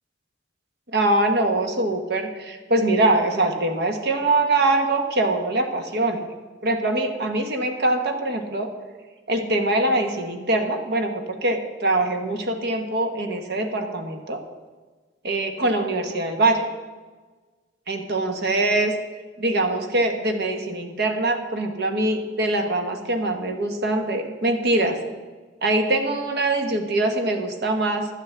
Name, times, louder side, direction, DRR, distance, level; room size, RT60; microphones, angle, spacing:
voice 1, 0.9-6.2 6.6-8.7 9.3-14.4 15.2-16.7 17.9-18.9 19.4-25.0 25.6-28.1, right 2 dB, 60° right, 5 dB, 1.2 m, -23 dB
12.0 x 5.8 x 8.2 m, 1.3 s
head